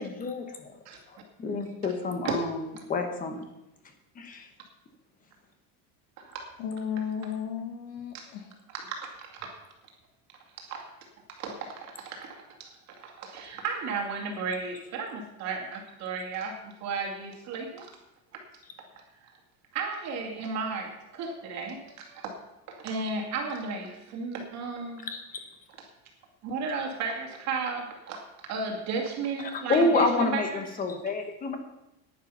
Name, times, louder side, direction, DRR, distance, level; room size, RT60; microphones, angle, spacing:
voice 1, 0.0-0.7 1.1-2.6 2.9-3.4 4.1-4.5 25.0-25.2 29.4-31.6, left 3 dB, 20° left, 6 dB, 1.2 m, -28 dB
voice 2, 6.6-8.4, left 7 dB, 55° left, 4 dB, 1.8 m, -34 dB
voice 3, 8.7-9.5 10.6-10.8 11.4-12.7 13.0-17.9 19.7-22.4 22.7-25.1 26.4-28.2 28.5-30.6, right 4 dB, 35° right, 1 dB, 2.4 m, -34 dB
10.5 x 10.5 x 5.7 m, 0.90 s
cardioid pair, 180°, 44 cm